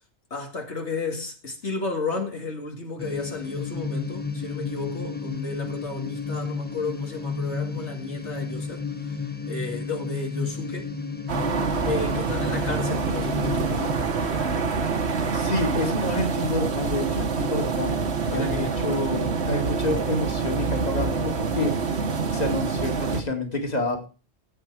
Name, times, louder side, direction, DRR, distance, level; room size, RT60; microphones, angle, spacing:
voice 1, 0.3-9.2 9.5-10.9 11.8-14.5 18.3-19.0, left 3 dB, 75° left, 2.6 m, -33 dB
sound 1, 3.0-13.9, left 5 dB, 10° left, 1.0 m, -32 dB
sound 2, 11.3-23.2, right 5 dB, 70° right, 1.5 m, -26 dB
voice 2, 15.3-18.0 18.3-24.1, left 2 dB, 35° left, 2.5 m, -28 dB
15.0 x 8.3 x 4.8 m
omnidirectional pair, 1.2 m